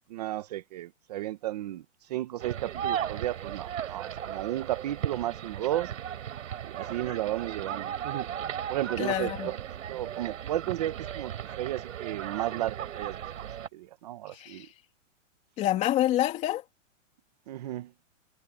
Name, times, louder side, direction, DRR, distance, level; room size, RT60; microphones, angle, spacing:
voice 1, 0.1-5.9 6.7-8.3 8.7-9.6 9.9-13.2 13.7-14.7 17.5-17.9, right 14 dB, 30° right, 0.9 m, -33 dB
sound 1, 2.4-13.7, right 9 dB, 85° right, 3.8 m, -36 dB
voice 2, 9.0-9.5 14.3-14.7 15.6-16.6, left 13 dB, 20° left, 2.8 m, -27 dB
supercardioid pair, 175°, 38 cm